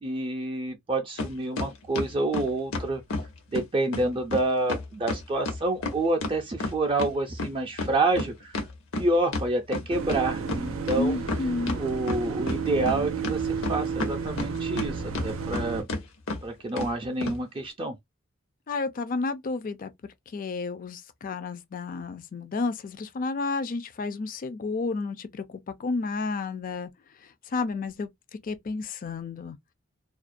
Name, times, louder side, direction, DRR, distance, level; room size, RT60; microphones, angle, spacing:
voice 1, 0.0-3.0 3.5-8.6 9.0-11.2 11.8-15.8 16.4-18.0, right 2 dB, 25° right, 0.4 m, -28 dB
sound 1, 1.2-1.3 1.6-3.3 3.5-3.6 3.9-4.1 4.3-4.4 4.7-7.1 7.4-10.2 10.5-10.6 10.9-11.8 12.1-13.0 13.2-14.9 15.1-15.6 15.9-16.0 16.3-16.4 16.8-16.9 17.2-17.4, left 2 dB, 85° left, 0.8 m, -30 dB
sound 2, 9.9-15.8, right 5 dB, 90° right, 0.5 m, -32 dB
voice 2, 10.9-11.8 18.7-19.9 20.3-26.9 27.2-28.1 28.4-29.6, left 3 dB, 45° left, 0.4 m, -31 dB
2.3 x 2.1 x 2.5 m
head